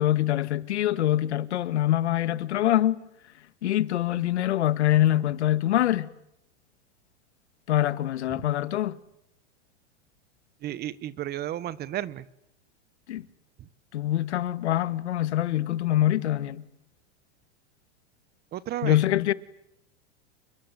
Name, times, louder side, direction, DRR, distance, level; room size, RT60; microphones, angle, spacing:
voice 1, 0.0-3.0 3.6-6.1 7.7-9.0 13.1-13.2 13.9-16.7 18.8-19.3, left 13 dB, 85° left, 1.8 m, -24 dB
voice 2, 10.6-12.2 13.6-13.7 18.5-19.0, right 12 dB, 30° right, 1.2 m, -33 dB
29.0 x 22.0 x 9.3 m
supercardioid pair, 140°, 33 cm